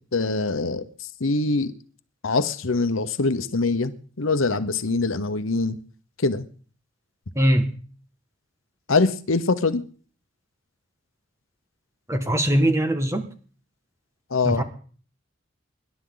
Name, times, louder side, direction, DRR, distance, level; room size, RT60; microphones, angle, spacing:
voice 1, 0.1-0.9 1.2-1.7 2.2-5.8 6.2-6.5 8.9-9.8 14.3-14.6, left 3 dB, 80° left, 12 dB, 1.0 m, -23 dB
voice 2, 7.3-7.7 12.1-13.2 14.4-14.6, equal, 15° right, 6 dB, 1.8 m, -21 dB
25.5 x 11.5 x 4.0 m, 0.43 s
head